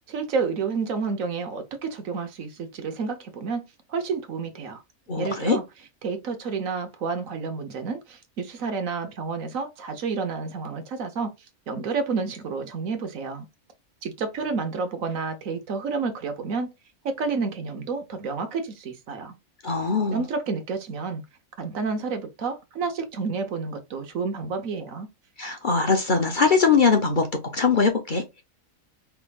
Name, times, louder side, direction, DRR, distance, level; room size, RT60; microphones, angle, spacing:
voice 1, 0.1-3.6 3.9-4.8 5.2-5.6 6.0-11.3 11.7-13.5 14.0-16.7 17.0-19.3 20.1-21.2 21.6-25.1, right 4 dB, 70° right, 1.3 m, -30 dB
voice 2, 5.1-5.6 19.6-20.2 25.4-27.3 27.5-28.4, left 5 dB, 40° left, 0.8 m, -21 dB
4.9 x 3.5 x 2.4 m
omnidirectional pair, 1.5 m